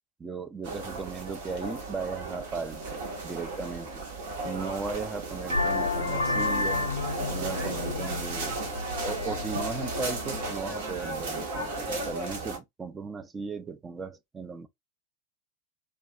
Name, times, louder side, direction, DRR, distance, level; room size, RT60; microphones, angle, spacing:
voice 1, 0.2-3.0 3.2-3.9 4.4-6.9 7.3-8.6 9.0-14.7, right 4 dB, 15° right, 0.4 m, -37 dB
sound 1, 0.6-12.6, right 2 dB, 55° right, 0.8 m, -35 dB
Vehicle horn car horn honking, 5.5-10.5, left 3 dB, 80° left, 0.4 m, -31 dB
2.4 x 2.2 x 2.5 m
figure-of-eight pair, 85°, 0 cm